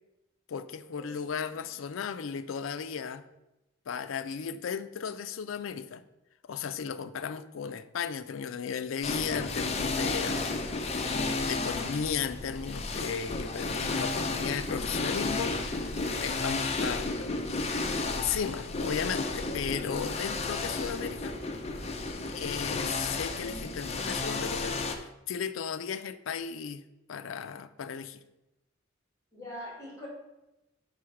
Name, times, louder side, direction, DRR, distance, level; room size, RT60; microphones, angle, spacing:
voice 1, 0.5-3.2 3.9-6.0 6.4-17.4 18.1-21.4 22.3-26.8 27.1-28.2, left 7 dB, 90° left, 0.4 m, -35 dB
sound 1, 9.0-24.9, left 3 dB, 35° left, 0.6 m, -32 dB
voice 2, 29.3-30.1, equal, 15° left, 2.6 m, -43 dB
5.4 x 4.9 x 5.8 m
head